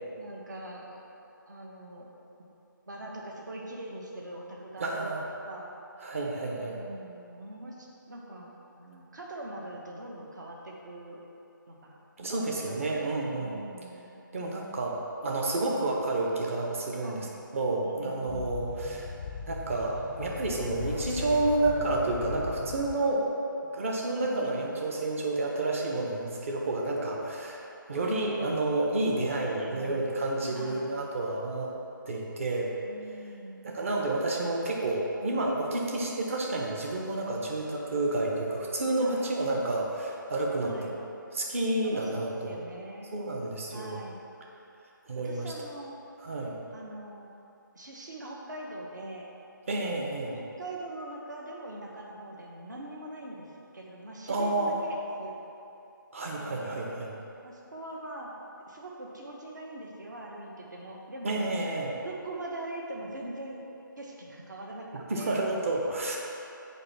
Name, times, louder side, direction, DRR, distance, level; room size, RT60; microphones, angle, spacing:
voice 1, 0.2-1.1 1.5-2.1 2.9-5.7 6.6-8.5 8.8-11.2 11.7-12.0 12.4-14.1 15.6-15.9 17.0-17.3 17.8-18.5 24.1-24.8 27.9-28.4 29.6-30.0 30.5-31.0 32.8-33.7 37.3-37.4 39.0-39.3 40.6-41.0 41.8-43.2 43.7-44.2 45.2-46.0 46.7-47.3 47.7-49.3 50.4-53.5 53.7-55.3 56.4-56.8 57.4-58.3 58.6-61.5 62.0-63.6 64.0-65.5, right 1 dB, 60° right, -2 dB, 1.5 m, -42 dB
voice 2, 4.8-5.3 6.0-6.8 12.2-13.6 14.3-17.3 17.5-19.1 19.5-23.3 23.7-27.6 27.9-31.7 32.0-32.7 33.6-40.7 41.3-42.6 43.1-44.0 45.1-45.5 46.2-46.6 49.7-50.4 54.3-54.7 56.1-57.1 61.2-62.0 64.9-66.2, right 2 dB, 40° right, -1 dB, 1.1 m, -30 dB
sound 1, 18.3-23.3, left 5 dB, 25° left, 0.4 m, -39 dB
7.1 x 4.7 x 5.7 m, 2.8 s
figure-of-eight pair, 155°, 11 cm